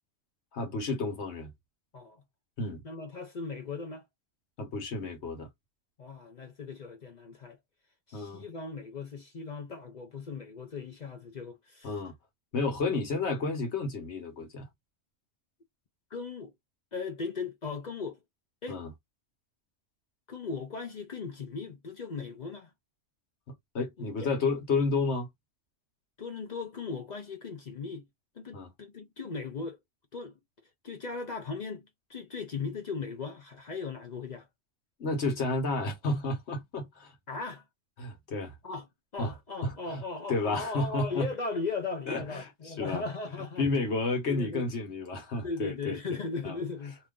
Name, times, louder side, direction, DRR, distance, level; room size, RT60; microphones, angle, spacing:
voice 1, 0.5-1.5 2.6-2.8 4.6-5.5 8.1-8.4 11.8-12.1 12.5-14.7 18.7-18.9 23.5-25.3 28.5-28.7 35.0-37.1 38.0-38.5 39.2-39.3 39.6-40.0 40.3-41.3 42.1-42.5 42.8-43.0 43.6-46.0 46.4-46.5, left 3 dB, 70° left, 1.4 m, -31 dB
voice 2, 2.8-4.0 6.0-7.6 8.1-11.9 16.1-16.5 16.9-18.2 18.6-18.8 20.3-22.7 24.0-24.3 26.2-28.1 28.4-29.8 30.1-30.4 30.8-34.5 37.3-37.6 38.6-38.9 39.1-43.7 44.2-44.6 45.4-47.0, left 4 dB, 45° left, 0.6 m, -38 dB
2.8 x 2.4 x 3.6 m
omnidirectional pair, 1.2 m